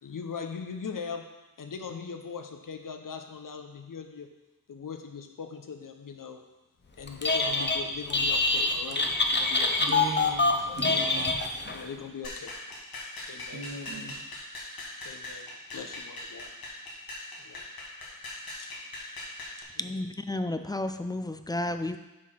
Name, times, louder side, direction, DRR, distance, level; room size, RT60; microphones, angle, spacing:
voice 1, 0.0-1.3 1.6-4.3 4.7-6.4 7.0-9.9 11.7-12.5 13.2-13.7 15.0-16.5 17.4-17.7 18.3-18.7 19.7-20.0, left 6 dB, 65° left, 6 dB, 0.9 m, -40 dB
Telephone, 7.1-7.8 8.1-11.8, left 3 dB, 30° left, 0.8 m, -25 dB
voice 2, 9.8-11.4 13.5-14.2, right 3 dB, 60° right, -3 dB, 2.3 m, -39 dB
sound 1, 12.2-19.6, left 2 dB, 85° left, 1.5 m, -41 dB
voice 3, 19.8-22.0, left 1 dB, 10° left, 8 dB, 0.4 m, -32 dB
7.1 x 4.8 x 5.7 m, 1.0 s
wide cardioid pair, 95°, 35 cm